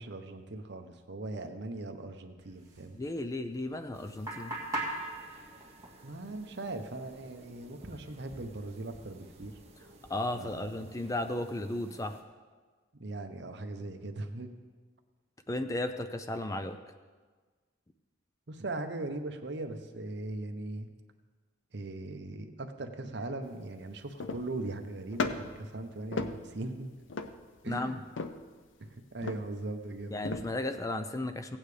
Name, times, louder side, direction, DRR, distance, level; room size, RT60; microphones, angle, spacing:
voice 1, 0.0-3.0 6.0-9.5 10.4-10.9 13.0-14.5 18.5-20.9 21.7-26.9 27.6-28.0 28.8-30.2, right 2 dB, 60° right, 7 dB, 0.8 m, -39 dB
sound 1, 2.4-11.1, right 1 dB, 20° right, 1.7 m, -44 dB
voice 2, 2.9-4.6 10.1-12.2 15.5-16.8 27.6-28.0 30.1-31.6, left 1 dB, 15° left, 9 dB, 0.4 m, -34 dB
sound 2, 3.9-12.2, right 2 dB, 35° right, 1.1 m, -57 dB
sound 3, 23.5-23.6 24.2-24.7 25.1-25.7 26.1-26.8 27.1-27.6 28.2-28.5 29.2-29.7 30.3-30.7, left 4 dB, 75° left, 0.6 m, -36 dB
16.5 x 8.9 x 3.3 m, 1.4 s
head